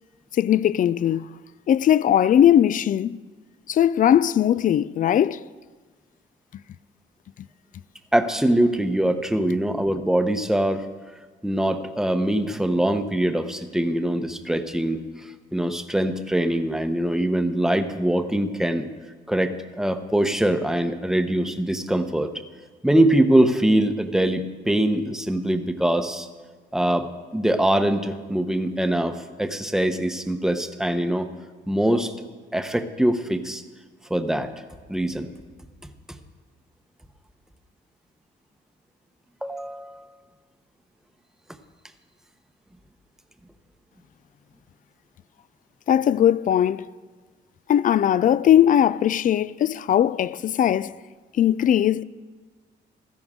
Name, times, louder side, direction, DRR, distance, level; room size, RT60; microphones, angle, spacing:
voice 1, 0.3-1.3 1.7-3.2 3.7-5.4 45.9-46.9 47.7-50.9 51.4-52.0, left 10 dB, 40° left, 0.4 m, -19 dB
voice 2, 8.1-10.8 11.4-15.0 15.5-18.9 19.3-22.3 22.8-26.3 26.7-31.3 31.7-32.1 32.5-33.6 34.1-34.5 34.9-35.3 39.4-40.0, right 1 dB, ahead, 0.9 m, -23 dB
16.0 x 13.0 x 3.7 m
cardioid pair, 90°, 20 cm